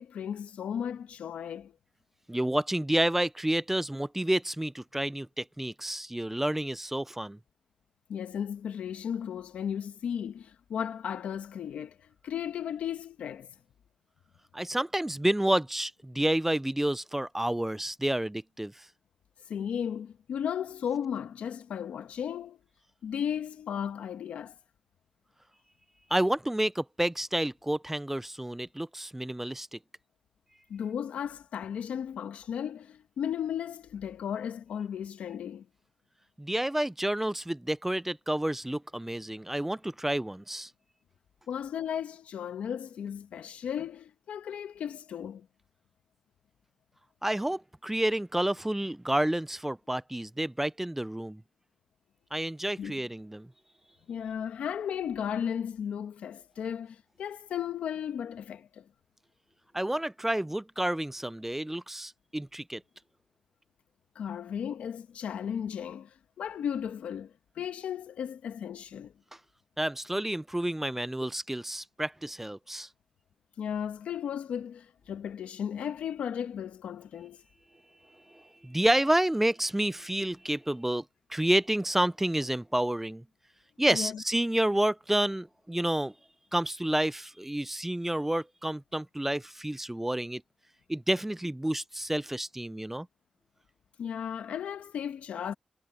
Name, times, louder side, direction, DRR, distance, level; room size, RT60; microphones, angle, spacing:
voice 1, 0.0-1.7 8.1-12.0 12.2-13.5 19.5-22.6 23.0-24.5 30.7-35.6 41.5-45.5 52.8-53.0 54.1-58.8 64.1-69.1 73.6-77.4 83.9-84.2 94.0-95.5, left 8 dB, 90° left, 1.5 m, -35 dB
voice 2, 2.3-7.4 14.5-18.9 26.1-29.8 36.4-40.7 47.2-51.4 52.3-53.5 59.7-62.8 69.8-72.9 78.3-81.0 81.3-83.2 83.8-86.1 86.5-90.4 90.9-93.1, right 1 dB, 10° right, 0.6 m, -29 dB
supercardioid pair, 45°, 2 cm